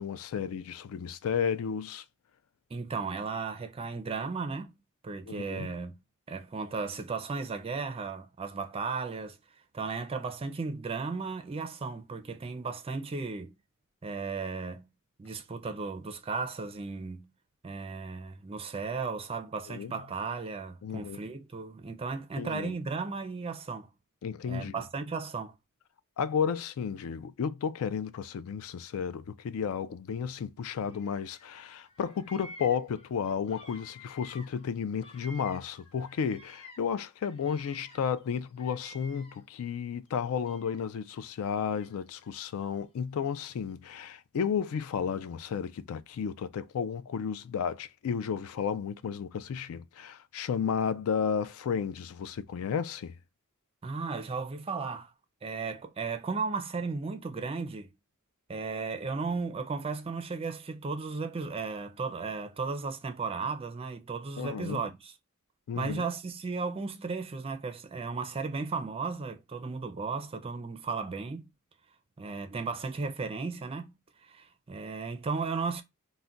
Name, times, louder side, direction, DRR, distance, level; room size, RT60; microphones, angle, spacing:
voice 1, 0.0-2.0 5.3-5.7 19.7-19.9 20.8-21.2 22.4-22.7 24.2-24.8 26.2-53.1 64.4-64.8 65.7-66.0, left 7 dB, 70° left, 0.3 m, -33 dB
voice 2, 2.7-4.7 5.0-5.9 6.3-9.4 9.7-13.5 14.0-14.9 15.2-17.3 17.6-23.9 24.5-25.5 53.8-55.1 55.4-57.9 58.5-65.1 65.8-71.5 72.2-73.9 74.2-75.8, right 4 dB, 25° right, 0.4 m, -35 dB
Bird vocalization bird call bird song, 30.8-31.6 31.8-36.9 37.2-39.6 40.1-41.0 41.8-42.9, left 2 dB, 25° left, 0.6 m, -52 dB
2.3 x 2.1 x 3.7 m
head